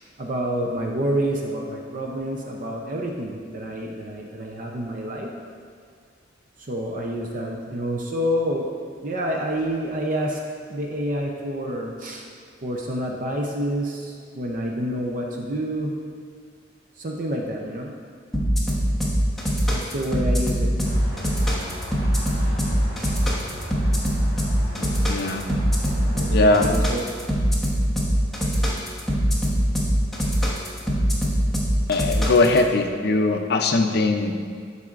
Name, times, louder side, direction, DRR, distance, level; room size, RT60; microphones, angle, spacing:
voice 1, 0.2-5.3 6.6-8.7 9.0-10.4 10.7-12.3 12.6-16.0 17.0-17.9 19.7-20.9 23.0-23.2 26.1-27.0, equal, 45° right, 0 dB, 0.5 m, -28 dB
sound 1, 18.3-32.6, equal, ahead, 1.0 m, -22 dB
sound 2, 20.8-26.5, equal, 75° right, 1.5 m, -37 dB
voice 2, 24.8-25.5 26.3-26.7 31.9-34.3, left 2 dB, 55° left, 5 dB, 0.5 m, -20 dB
12.5 x 4.1 x 2.4 m, 2.1 s
head